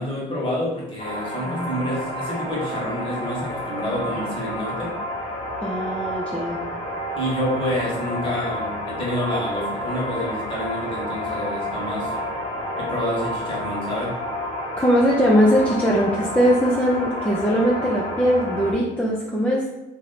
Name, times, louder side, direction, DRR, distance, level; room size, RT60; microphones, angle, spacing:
voice 1, 0.0-4.9 7.2-12.2 12.8-14.2, left 1 dB, 30° left, -4 dB, 1.4 m, -28 dB
sound 1, 1.0-18.7, equal, 50° left, 1.2 m, -30 dB
voice 2, 1.4-1.8 5.6-6.6 14.8-19.7, equal, 10° left, -4 dB, 0.5 m, -20 dB
2.9 x 2.6 x 4.1 m, 0.98 s
cardioid pair, 110°, 17 cm